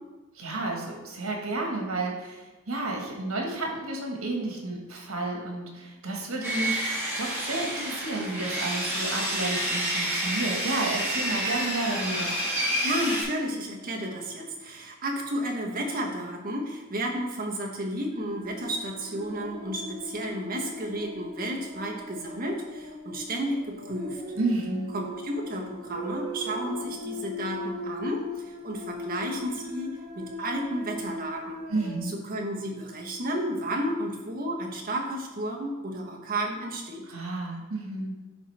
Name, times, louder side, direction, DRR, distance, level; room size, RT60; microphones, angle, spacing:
voice 1, 0.3-6.9 7.1-12.4 24.3-24.9 31.7-32.1 37.1-38.2, right 2 dB, 85° right, 1 dB, 1.5 m, -31 dB
Sawing, 6.4-13.2, right 1 dB, 10° right, 1.7 m, -29 dB
voice 2, 12.8-24.2 24.9-31.6 32.0-37.1, right 1 dB, 45° right, 0 dB, 1.1 m, -32 dB
sound 1, 18.1-32.0, left 1 dB, 65° right, 2.1 m, -39 dB
10.5 x 4.0 x 3.4 m, 1.2 s
head